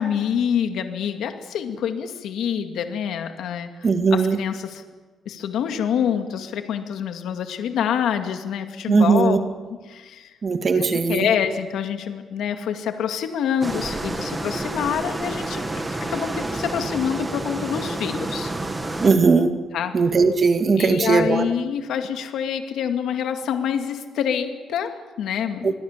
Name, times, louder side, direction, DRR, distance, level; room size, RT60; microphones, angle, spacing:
voice 1, 0.0-4.8 5.3-9.4 9.9-10.3 10.8-15.8 16.1-18.5 19.7-20.0 20.8-25.7, left 8 dB, 80° left, 6 dB, 2.2 m, -26 dB
voice 2, 3.8-4.4 8.9-9.4 10.4-11.3 19.0-19.6 19.9-21.5 25.6-25.7, right 4 dB, 35° right, 7 dB, 2.3 m, -18 dB
sound 1, 13.6-19.1, right 2 dB, 15° right, 2.3 m, -29 dB
27.5 x 22.5 x 7.4 m, 1.3 s
cardioid pair, 145°, 0 cm